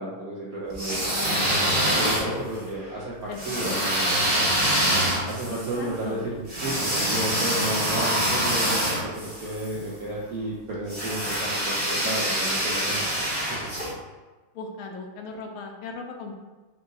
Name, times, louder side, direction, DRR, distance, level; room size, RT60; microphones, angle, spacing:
voice 1, 0.0-1.0 2.0-4.5 5.3-13.6, right 1 dB, 70° right, -5 dB, 0.8 m, -32 dB
sound 1, 0.7-2.6 3.4-9.7 10.9-13.9, right 1 dB, 35° right, 0.8 m, -25 dB
voice 2, 0.9-2.6 3.3-4.3 5.5-6.2 11.9-12.0 12.3-12.7 14.5-16.4, left 4 dB, 80° left, 3 dB, 1.5 m, -39 dB
4.5 x 2.5 x 3.8 m, 1.2 s
omnidirectional pair, 2.3 m